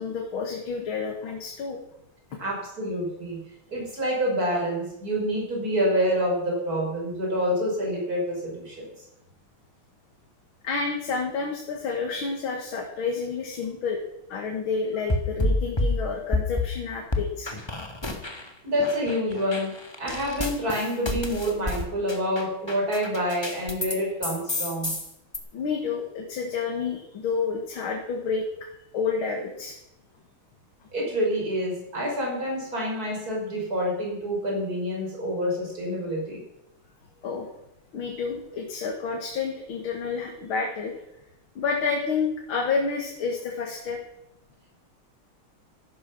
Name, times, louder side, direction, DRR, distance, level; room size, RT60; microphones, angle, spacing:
voice 1, 0.0-1.8 2.3-2.4 10.6-14.0 14.3-17.5 25.5-28.5 28.9-29.8 37.2-37.5 37.9-41.0 41.6-44.0, left 5 dB, 75° left, 1 dB, 2.5 m, -29 dB
voice 2, 2.4-3.4 3.7-8.9 18.6-19.7 20.0-25.0 30.9-36.4, equal, 45° right, -2 dB, 5.6 m, -27 dB
sound 1, 15.1-16.7 17.1-18.5 18.8-24.0 24.2-25.4, left 2 dB, 15° left, 1.4 m, -29 dB
14.5 x 11.0 x 6.0 m, 0.86 s
omnidirectional pair, 2.3 m